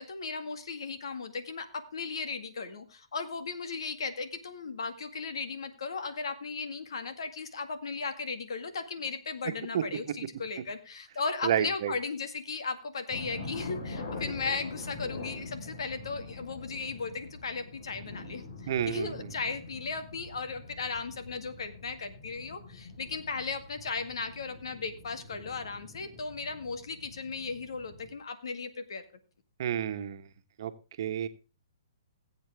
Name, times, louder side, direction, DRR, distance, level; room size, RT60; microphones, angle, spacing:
voice 1, 0.0-29.0, left 4 dB, 75° left, 9 dB, 2.0 m, -36 dB
voice 2, 11.4-11.9 18.7-19.1 29.6-30.2 30.6-30.7 31.0-31.3, right 9 dB, 55° right, 9 dB, 1.3 m, -29 dB
sound 1, 13.1-28.2, left 2 dB, 55° left, 4.5 m, -44 dB
20.0 x 8.0 x 3.5 m, 0.34 s
hypercardioid pair, 135°, 3 cm